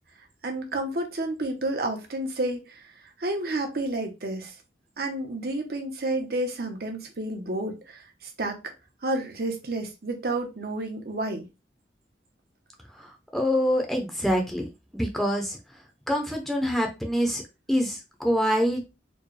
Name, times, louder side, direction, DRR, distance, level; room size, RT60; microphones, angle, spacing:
voice 1, 0.4-2.8 3.2-4.5 5.0-8.6 9.0-11.5, right 2 dB, 60° right, 0.9 m, -30 dB
voice 2, 12.9-14.7 14.9-15.6 16.1-17.4 17.7-18.9, equal, ahead, 0.6 m, -25 dB
4.4 x 2.2 x 3.2 m
head